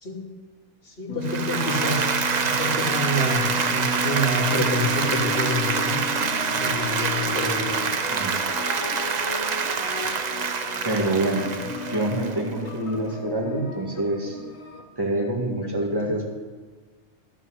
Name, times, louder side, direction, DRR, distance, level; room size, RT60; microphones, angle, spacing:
voice 1, 0.9-2.1 2.4-6.0 6.5-8.1 11.8-11.9 15.6-15.7, left 1 dB, 45° left, -2 dB, 2.2 m, -28 dB
sound 1, 1.1-14.8, left 1 dB, 75° left, 1.5 m, -34 dB
Applause, 1.2-12.6, right 5 dB, 45° right, 0.6 m, -26 dB
voice 2, 8.1-8.4 10.8-11.5 11.9-14.4 15.0-16.4, right 1 dB, 20° right, -1 dB, 1.9 m, -26 dB
12.0 x 7.4 x 6.4 m, 1.5 s
omnidirectional pair, 1.4 m